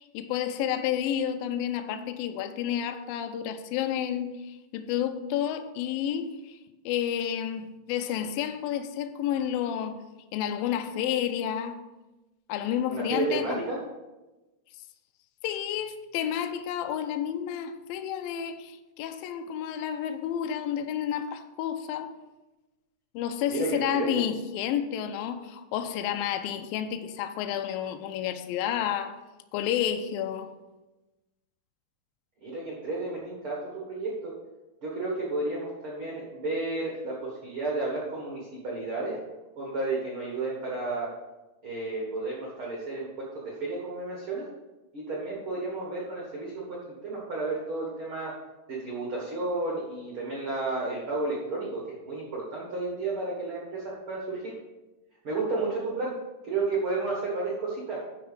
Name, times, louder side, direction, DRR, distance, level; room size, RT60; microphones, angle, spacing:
voice 1, 0.0-6.6 6.9-10.0 10.3-11.8 12.5-13.6 15.4-22.1 23.1-29.2 29.5-30.5, left 9 dB, 85° left, 2.1 m, -30 dB
voice 2, 12.9-13.8 23.5-24.2 32.4-34.3 34.8-39.2 39.5-41.1 41.6-44.4 44.9-48.3 48.7-54.5 55.2-56.1 56.4-58.0, right 3 dB, 50° right, 1.6 m, -32 dB
12.0 x 4.7 x 5.0 m
omnidirectional pair, 4.8 m